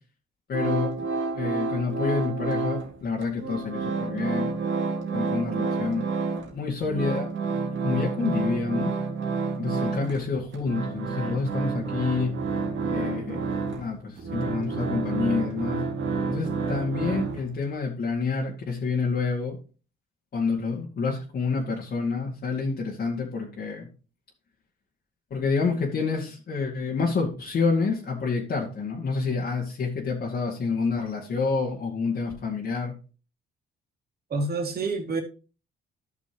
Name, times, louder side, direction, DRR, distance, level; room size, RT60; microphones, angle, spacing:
voice 1, 0.5-1.1 1.3-4.6 5.1-6.0 6.5-7.3 7.8-9.0 9.6-12.3 12.9-15.8 16.3-19.6 20.3-23.9 25.3-32.9, left 4 dB, 55° left, 2.0 m, -28 dB
sound 1, 0.5-3.0 3.2-6.5 6.8-17.7, right 4 dB, 70° right, 2.1 m, -29 dB
voice 2, 34.3-35.2, right 3 dB, 50° right, 2.5 m, -27 dB
12.5 x 6.1 x 3.0 m
cardioid pair, 90°, 20 cm